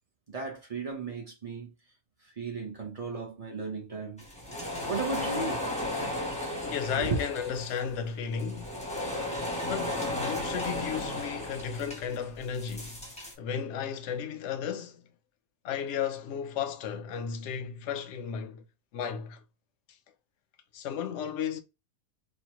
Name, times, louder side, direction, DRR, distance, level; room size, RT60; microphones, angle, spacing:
voice 1, 0.3-1.7 2.4-4.2 4.9-5.7 7.0-7.2, right 4 dB, 35° right, 0.7 m, -35 dB
sound 1, 4.2-13.3, left 1 dB, 5° left, 0.7 m, -34 dB
voice 2, 6.6-8.8 9.6-13.0 13.4-15.0 15.6-18.6 18.9-19.4 20.7-21.6, left 7 dB, 65° left, 0.8 m, -34 dB
3.1 x 2.2 x 2.9 m
omnidirectional pair, 1.5 m